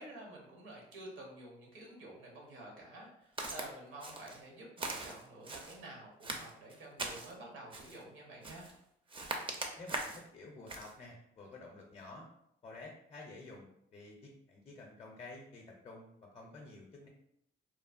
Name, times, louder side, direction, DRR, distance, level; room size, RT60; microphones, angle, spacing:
voice 1, 0.0-8.7, right 1 dB, 80° right, -1 dB, 1.0 m, -50 dB
Walk footsteps, 3.4-3.7 4.0-4.4 4.8-5.8 6.2-7.3 7.7-8.0 8.4-8.8 9.1-10.2 10.7-10.9, right 2 dB, 25° right, 0.4 m, -41 dB
voice 2, 9.8-12.3 12.6-17.1, left 2 dB, 35° left, -1 dB, 0.5 m, -51 dB
3.0 x 2.1 x 2.4 m, 0.74 s
cardioid pair, 90°, 20 cm